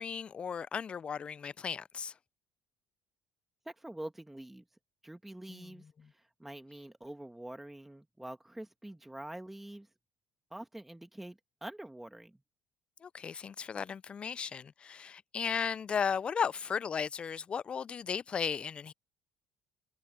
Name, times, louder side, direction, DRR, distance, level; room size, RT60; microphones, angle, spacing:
voice 1, 0.0-2.1 5.5-5.7 13.0-18.9, left 6 dB, 35° left, 0.4 m, -35 dB
voice 2, 3.6-4.6 5.0-9.9 10.5-12.4, right 1 dB, 5° right, 1.5 m, -46 dB
supercardioid pair, 80°, 3 cm